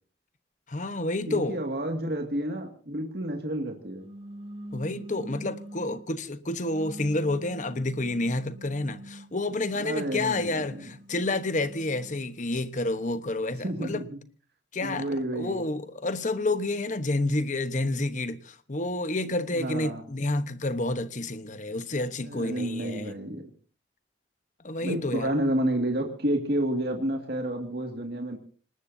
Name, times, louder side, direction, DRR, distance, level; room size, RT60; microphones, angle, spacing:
voice 1, 0.7-1.6 4.7-14.0 14.7-15.1 15.3-23.1 24.6-25.3, left 2 dB, 45° left, 1.1 m, -29 dB
voice 2, 1.3-4.0 9.8-10.8 13.6-14.2 14.8-15.6 19.5-20.0 22.2-23.5 24.8-28.4, right 1 dB, 60° right, 2.2 m, -30 dB
sound 1, 4.0-6.0 6.7-9.3 9.9-12.2, right 1 dB, 35° right, 2.2 m, -44 dB
26.0 x 19.5 x 2.8 m
head